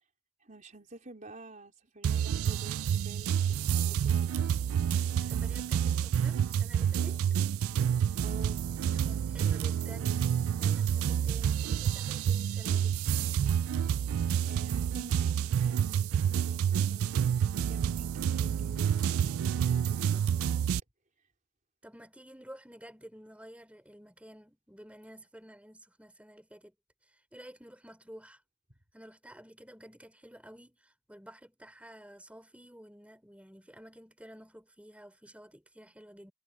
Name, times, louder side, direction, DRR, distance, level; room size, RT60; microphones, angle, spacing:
voice 1, 0.4-4.5 8.2-8.6 14.4-20.5, right 2 dB, 35° right, 4.1 m, -51 dB
sound 1, 2.0-20.8, right 8 dB, 75° right, 0.3 m, -28 dB
voice 2, 4.9-7.2 9.0-13.0 21.8-26.7 27.1-28.4 28.9-36.3, equal, 5° right, 5.2 m, -51 dB
head